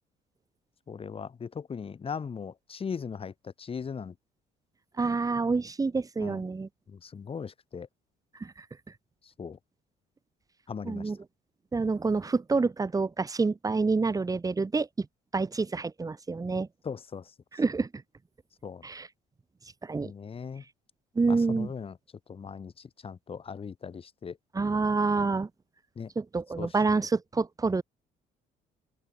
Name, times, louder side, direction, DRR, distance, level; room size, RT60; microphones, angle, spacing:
voice 1, 0.9-4.1 6.2-6.4 6.9-7.9 9.4-9.6 10.7-11.1 16.8-17.3 18.6-18.8 20.0-20.6 21.3-21.9 22.3-24.4 25.9-26.1 26.6-26.7, left 6 dB, 35° left, 3.6 m, -38 dB
voice 2, 5.0-6.7 8.4-8.5 10.8-11.2 11.7-15.1 15.3-16.7 17.5-17.9 18.8-19.1 19.8-20.1 21.1-21.7 24.5-25.5 26.2-27.8, right 4 dB, 20° right, 2.7 m, -27 dB
open air
cardioid pair, 110°, 17 cm